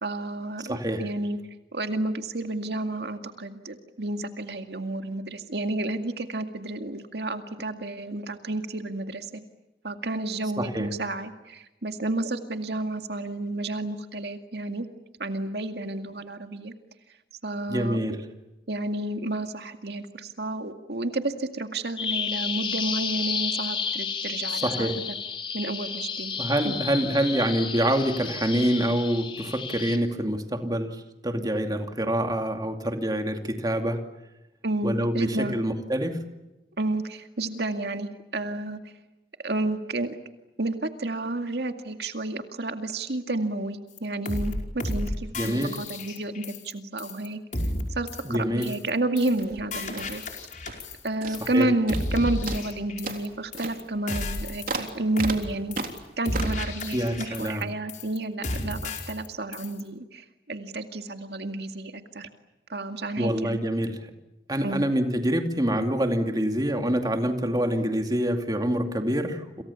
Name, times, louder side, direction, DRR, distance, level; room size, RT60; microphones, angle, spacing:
voice 1, 0.0-1.4 1.7-9.4 9.8-14.9 15.2-16.7 17.4-18.0 18.7-24.9 25.5-26.3 26.6-26.8 34.6-35.5 36.8-38.9 39.4-40.2 40.6-47.4 47.9-50.2 51.0-55.8 56.2-62.3 62.7-63.6 64.6-64.8, right 2 dB, 70° right, 6 dB, 2.1 m, -31 dB
voice 2, 0.7-1.0 10.6-10.9 17.7-18.2 24.6-24.9 26.4-34.0 34.8-36.2 45.3-45.7 48.2-48.7 51.4-51.7 56.9-57.6 63.2-64.0 64.5-69.6, equal, 20° right, 5 dB, 2.5 m, -26 dB
Bird vocalization bird call bird song, 22.0-30.0, left 6 dB, 30° left, 2.9 m, -32 dB
sound 1, 44.0-44.1 44.3-44.5 44.8-45.1 45.3-46.7 47.0-47.3 47.5-47.8 48.1-48.4 48.6-48.9 49.2-49.4 49.7-51.1 51.3-51.6 51.9-53.3 53.5-53.8 54.1-54.9 55.2-55.4 55.7-56.0 56.3-57.6 57.9-58.2 58.4-59.3 59.5-59.8, left 1 dB, 45° left, 5.2 m, -32 dB
sound 2, 49.3-50.9 51.2-51.6 51.9-52.2 52.5-56.7, right 3 dB, 50° right, 3.5 m, -36 dB
29.5 x 27.5 x 7.1 m, 0.97 s
head